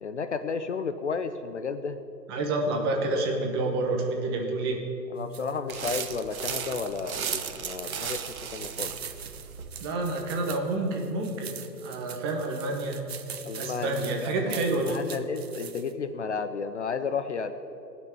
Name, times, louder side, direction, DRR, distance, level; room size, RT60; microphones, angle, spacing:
voice 1, 0.0-2.0 5.1-9.0 13.4-17.5, left 5 dB, 45° left, 9 dB, 0.6 m, -33 dB
voice 2, 2.3-4.8 9.8-11.5 11.8-13.0 13.6-15.0, right 2 dB, 15° right, 1 dB, 0.9 m, -28 dB
sound 1, 5.2-15.9, right 8 dB, 40° right, 0.7 m, -43 dB
sound 2, 5.7-9.8, right 7 dB, 55° right, 1.0 m, -35 dB
17.5 x 6.1 x 9.1 m, 2.9 s
hypercardioid pair, 150°, 50 cm